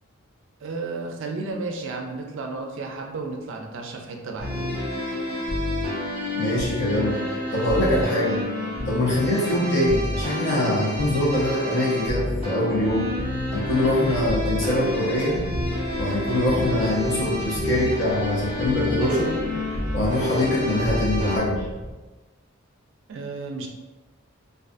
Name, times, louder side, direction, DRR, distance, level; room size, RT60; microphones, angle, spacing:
voice 1, 0.6-4.8 23.1-23.7, right 3 dB, 60° right, 2 dB, 0.4 m, -33 dB
sound 1, 4.4-21.4, left 2 dB, 30° left, 1.0 m, -28 dB
voice 2, 6.3-7.2 7.5-8.4 8.9-13.1 13.5-15.4 16.0-19.4 19.9-21.7, left 1 dB, 55° left, -6 dB, 0.8 m, -23 dB
sound 2, 12.7-22.0, right 1 dB, 5° right, 0.5 m, -37 dB
2.4 x 2.4 x 2.4 m, 1.2 s
head